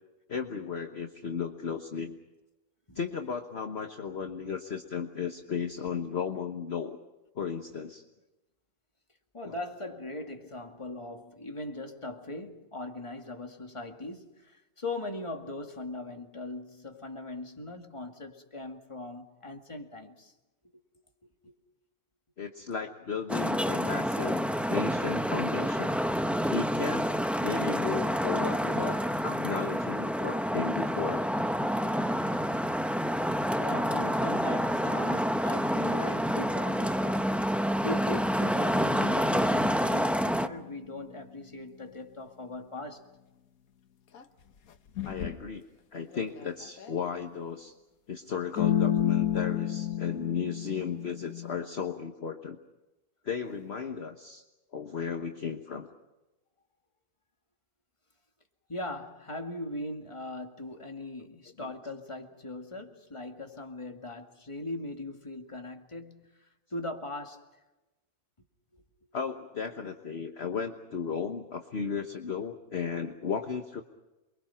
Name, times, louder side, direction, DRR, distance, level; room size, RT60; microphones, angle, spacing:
voice 1, 0.3-2.2 2.9-7.0 7.3-8.0 9.4-9.6 22.4-24.4 24.7-25.9 26.5-31.2 33.9-34.0 45.0-45.7 45.9-47.7 48.1-52.6 53.2-54.4 54.7-55.9 61.6-61.7 69.1-73.8, left 6 dB, 45° left, 1.4 m, -35 dB
voice 2, 9.3-20.3 21.4-21.5 33.6-37.3 37.8-43.0 58.7-67.5 68.7-68.8, left 2 dB, 20° left, 2.2 m, -40 dB
Traffic noise roadway noise, 23.3-40.5, equal, ahead, 0.5 m, -28 dB
sound 1, 38.7-41.1 44.1-44.2 45.0-45.5 46.1-47.0 48.6-51.6, left 10 dB, 75° left, 1.5 m, -32 dB
28.5 x 23.0 x 5.8 m
omnidirectional pair, 1.5 m